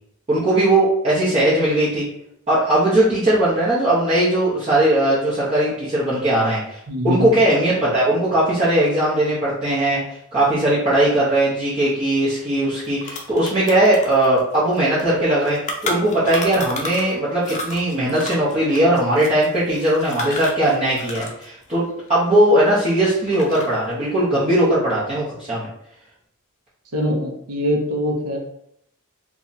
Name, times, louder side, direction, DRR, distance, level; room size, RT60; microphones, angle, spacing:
voice 1, 0.3-2.1 2.5-6.8 7.0-21.8 22.1-25.7, right 1 dB, 30° right, -10 dB, 0.9 m, -19 dB
voice 2, 6.9-7.3 26.9-28.4, equal, 85° right, 1 dB, 0.7 m, -23 dB
Ice cube - Munching, 12.4-12.5 12.7-17.1 17.4-21.5 21.7-22.9 23.2-23.8, left 2 dB, 35° left, 0.6 m, -32 dB
2.8 x 2.4 x 4.0 m, 0.74 s
head